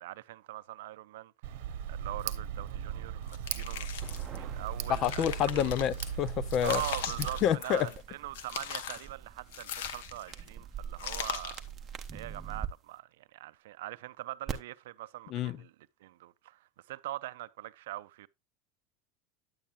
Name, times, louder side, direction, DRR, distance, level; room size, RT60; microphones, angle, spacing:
voice 1, 0.0-1.5 1.9-3.9 4.4-5.7 6.6-11.6 12.1-15.7 16.0-18.3, right 16 dB, 90° right, 0.4 m, -42 dB
Tick, 1.4-7.5, right 9 dB, 70° right, 0.9 m, -38 dB
sound 1, 3.3-4.4 4.8-6.1 6.5-8.0 8.3-9.1 9.5-10.4 11.0-11.7, left 9 dB, 85° left, 0.9 m, -40 dB
sound 2, 4.0-12.7 14.5-14.6, right 8 dB, 20° right, 0.9 m, -45 dB
voice 2, 4.9-6.8 7.4-7.9 15.3-15.6, left 10 dB, 40° left, 0.5 m, -28 dB
9.4 x 8.7 x 2.4 m
supercardioid pair, 150°, 0 cm